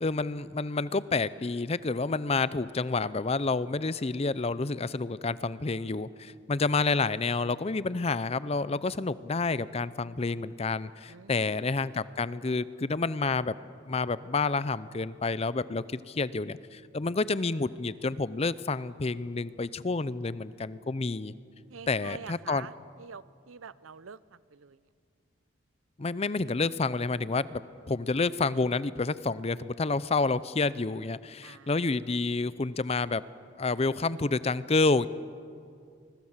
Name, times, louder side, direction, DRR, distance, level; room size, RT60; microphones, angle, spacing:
voice 1, 0.0-13.5 13.9-21.3 21.9-22.7 26.0-27.6 27.9-33.2 33.6-35.1, left 3 dB, 30° left, 17 dB, 0.5 m, -29 dB
voice 2, 11.1-11.7 21.7-22.7 23.0-24.2 24.5-24.8 31.4-31.7, right 6 dB, 90° right, 18 dB, 0.7 m, -46 dB
24.5 x 22.0 x 7.4 m, 2.3 s
head